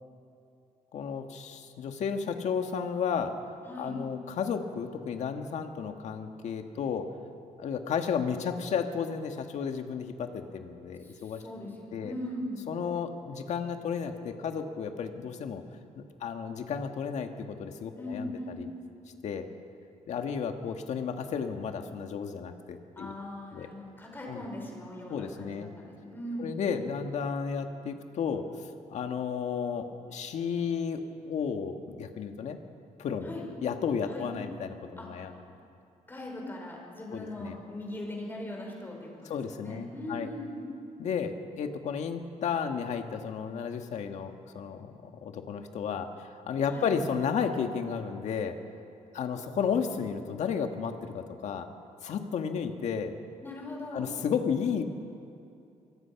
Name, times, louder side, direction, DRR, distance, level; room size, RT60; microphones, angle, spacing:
voice 1, 0.9-3.4 3.8-7.1 7.6-11.4 11.9-12.1 12.7-15.6 16.0-18.7 19.2-19.5 20.1-23.1 23.5-23.7 24.3-24.5 25.1-25.7 26.4-28.5 28.9-32.6 33.0-35.4 37.1-37.6 39.3-40.3 41.0-48.6 49.1-51.7 52.0-53.2 53.9-54.8, left 6 dB, 65° left, 5 dB, 1.8 m, -33 dB
voice 2, 11.0-12.7 17.9-18.6 23.0-26.6 33.2-33.5 34.1-34.3 35.0-35.1 36.1-40.6 46.7-46.9 53.4-54.2, left 1 dB, 15° left, -1 dB, 5.2 m, -40 dB
25.0 x 23.5 x 6.0 m, 2.6 s
cardioid pair, 160°, 13 cm